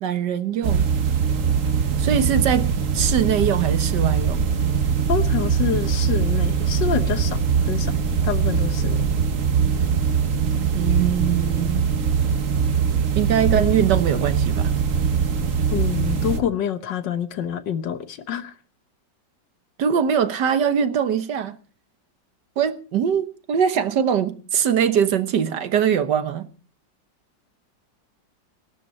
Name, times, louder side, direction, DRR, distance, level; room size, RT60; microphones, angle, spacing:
voice 1, 0.0-0.9 2.0-2.7 2.9-4.5 10.7-11.9 13.2-14.7 19.8-21.6 22.6-26.5, right 8 dB, 70° right, 1.7 m, -22 dB
sound 1, 0.6-16.4, right 6 dB, 50° right, 1.4 m, -22 dB
voice 2, 5.1-7.9 8.2-9.0 15.7-18.5, left 9 dB, 75° left, 1.7 m, -27 dB
19.0 x 12.0 x 4.3 m
omnidirectional pair, 2.0 m